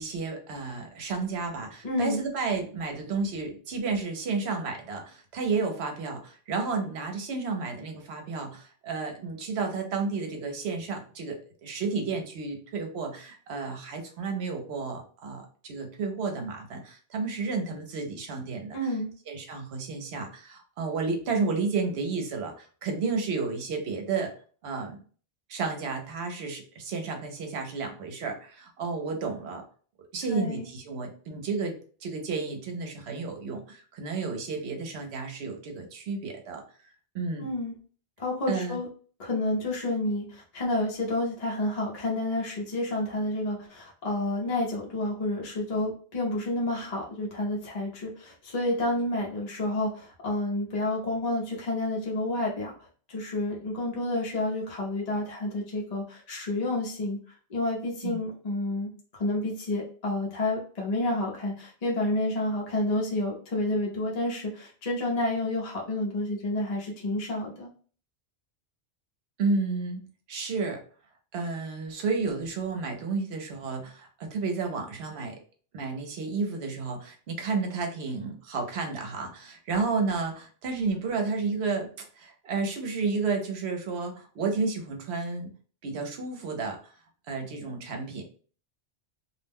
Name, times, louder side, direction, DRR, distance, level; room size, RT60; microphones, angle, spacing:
voice 1, 0.0-18.9 19.3-24.3 24.6-25.0 25.5-29.6 30.1-36.6 37.1-37.5 38.5-38.8 58.0-58.2 69.4-70.0 70.3-70.8 71.3-75.4 75.7-81.9 82.2-85.5 85.8-86.9 87.3-88.2, right 4 dB, 70° right, 3 dB, 0.9 m, -31 dB
voice 2, 1.8-2.2 18.7-19.1 30.3-30.7 37.4-37.7 38.2-38.9 39.2-57.2 57.5-67.7, left 1 dB, 40° left, -3 dB, 0.7 m, -30 dB
2.4 x 2.1 x 3.4 m, 0.42 s
omnidirectional pair, 1.1 m